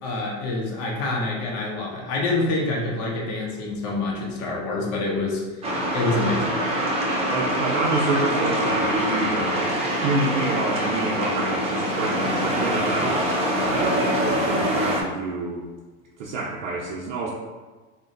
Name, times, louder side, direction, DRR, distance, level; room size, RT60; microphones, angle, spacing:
voice 1, 0.0-5.4 5.9-6.5, left 2 dB, 45° left, -3 dB, 0.8 m, -26 dB
sound 1, 5.6-15.0, equal, 15° right, 0.6 m, -24 dB
voice 2, 7.3-13.3 13.6-13.8 14.2-15.6 16.2-17.3, right 3 dB, 70° right, -4 dB, 0.6 m, -28 dB
2.6 x 2.2 x 3.7 m, 1.3 s
hypercardioid pair, 105°, 38 cm